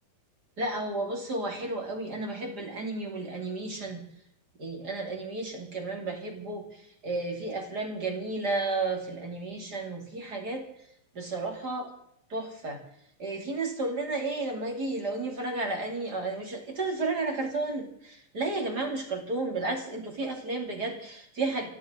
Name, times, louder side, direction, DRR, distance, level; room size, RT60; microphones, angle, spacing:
voice 1, 0.6-4.0 4.6-10.6 11.1-11.9 12.3-12.8 13.2-21.7, right 2 dB, 30° right, 2 dB, 2.1 m, -32 dB
28.0 x 12.5 x 3.9 m, 0.69 s
omnidirectional pair, 6.0 m